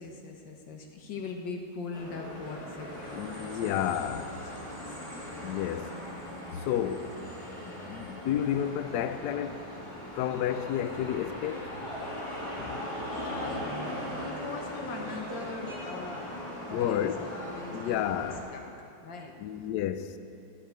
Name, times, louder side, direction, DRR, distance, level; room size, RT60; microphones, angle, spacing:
voice 1, 0.0-3.9 4.3-5.0 7.6-7.9 12.9-17.1 17.4-18.2 18.5-18.6 19.0-19.3, left 4 dB, 60° left, 1.9 m, -41 dB
sound 1, 1.9-18.4, equal, 15° left, 3.1 m, -39 dB
voice 2, 3.1-4.4 5.4-5.9 6.6-7.1 7.9-9.6 10.2-11.7 12.6-12.9 16.7-17.3 17.7-18.4 19.4-20.2, left 10 dB, 85° left, 0.9 m, -31 dB
12.0 x 9.3 x 9.1 m
omnidirectional pair, 2.4 m